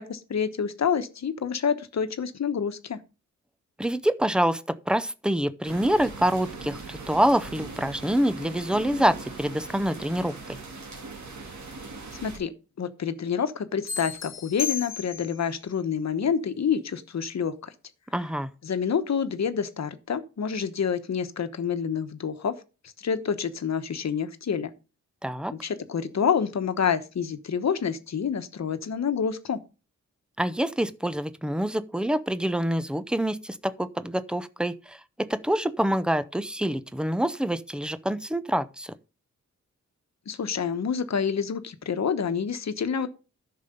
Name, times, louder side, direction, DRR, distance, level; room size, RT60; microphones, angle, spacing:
voice 1, 0.0-3.0 12.2-12.5 12.8-17.7 18.6-22.6 23.0-24.7 25.5-29.6 40.3-43.1, left 7 dB, 60° left, 1.1 m, -28 dB
voice 2, 3.8-10.3 18.1-18.5 25.2-25.5 30.4-38.9, right 1 dB, 5° right, 0.5 m, -26 dB
sound 1, 5.6-12.4, right 3 dB, 65° right, 3.0 m, -40 dB
sound 2, 13.9-15.5, left 8 dB, 40° left, 1.9 m, -33 dB
10.5 x 6.8 x 5.2 m
wide cardioid pair, 175°, 31 cm